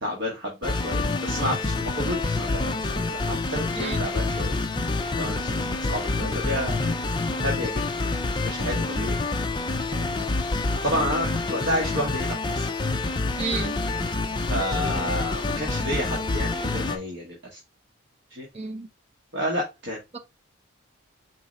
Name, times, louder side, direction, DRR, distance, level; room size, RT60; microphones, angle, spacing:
voice 1, 0.0-4.6 5.2-6.9 7.3-7.8 8.4-9.2 9.9-10.1 10.8-12.7 14.3-17.6 18.3-18.5 19.3-20.0, equal, 55° right, 1.2 m, -30 dB
sound 1, 0.6-17.0, left 3 dB, 20° left, 0.4 m, -27 dB
voice 2, 13.4-13.8 18.5-18.9 20.1-20.2, right 4 dB, 30° right, 0.6 m, -31 dB
4.5 x 3.2 x 3.7 m
head